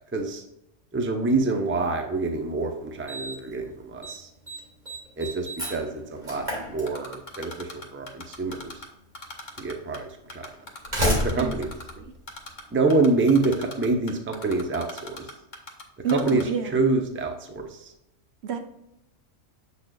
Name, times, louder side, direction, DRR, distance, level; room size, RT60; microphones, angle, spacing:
voice 1, 0.1-0.4 0.9-4.3 5.2-8.8 9.6-10.5 11.0-11.7 12.7-15.3 16.1-16.4 16.7-17.9, right 3 dB, 15° right, 4 dB, 0.6 m, -26 dB
Slam, 2.3-2.4 3.1-3.5 3.8-4.2 4.5-7.4 8.5-8.6 9.5-9.6 10.5-12.9, left 1 dB, 35° right, 2.3 m, -31 dB
Typing, 6.9-8.9 9.1-10.0 10.3-11.9 12.3-12.6 12.9-15.8 16.1-16.4, left 2 dB, 40° left, 1.1 m, -39 dB
voice 2, 16.0-16.8 18.4-18.6, right 5 dB, 60° right, 6 dB, 0.9 m, -28 dB
7.5 x 6.4 x 2.3 m, 0.84 s
omnidirectional pair, 1.4 m